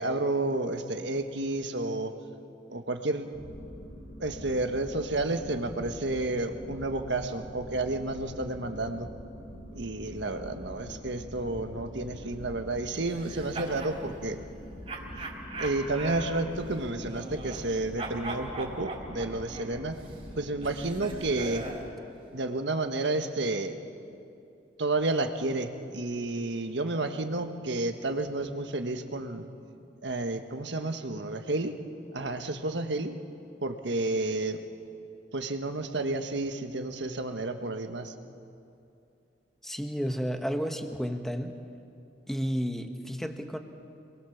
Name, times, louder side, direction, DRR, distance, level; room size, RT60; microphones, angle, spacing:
voice 1, 0.0-2.1 2.7-3.3 4.2-9.1 9.7-14.4 15.6-20.0 20.4-21.6 22.3-23.8 24.8-29.5 30.0-31.8 32.1-33.2 33.6-34.6 35.3-38.1, right 2 dB, 75° right, 6 dB, 1.5 m, -31 dB
sound 1, 3.3-21.7, equal, 75° left, 2.8 m, -44 dB
sound 2, 13.1-14.0 14.9-17.7 18.0-21.9, right 2 dB, 35° right, 4.1 m, -40 dB
voice 2, 39.6-41.5 42.3-43.6, equal, ahead, 5 dB, 1.2 m, -32 dB
27.5 x 22.0 x 7.2 m, 2.6 s
head